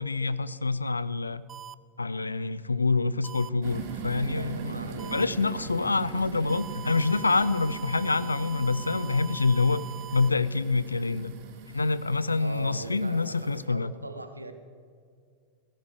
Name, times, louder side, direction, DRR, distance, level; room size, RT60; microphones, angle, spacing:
voice 1, 0.0-1.4 2.0-4.8 5.1-9.8 10.1-11.3 11.7-13.9, left 3 dB, 80° left, 17 dB, 0.5 m, -26 dB
sound 1, 1.5-1.7 3.2-3.5 5.0-5.2 6.5-10.3, right 10 dB, 20° right, 0.4 m, -42 dB
sound 2, 3.6-13.6, right 5 dB, 45° right, 1.8 m, -41 dB
voice 2, 4.2-6.1 12.3-14.5, right 2 dB, 85° right, 9 dB, 1.2 m, -41 dB
17.0 x 15.0 x 4.8 m, 2.2 s
figure-of-eight pair, 90°, 0 cm